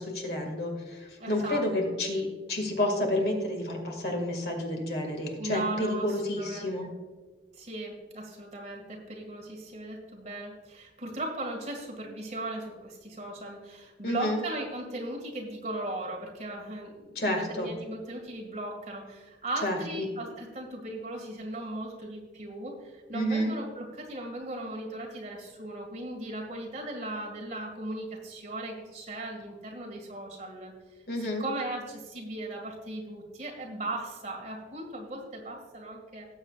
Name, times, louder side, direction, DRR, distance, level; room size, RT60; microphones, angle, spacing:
voice 1, 0.0-6.9 14.0-14.4 17.2-17.7 19.6-20.1 23.1-23.5 31.1-31.4, left 1 dB, 55° left, 2 dB, 2.0 m, -30 dB
voice 2, 1.2-1.9 5.4-6.1 6.4-6.9 7.5-30.7 31.2-36.3, right 1 dB, 40° right, 0 dB, 2.0 m, -37 dB
18.0 x 7.5 x 2.4 m, 1.4 s
head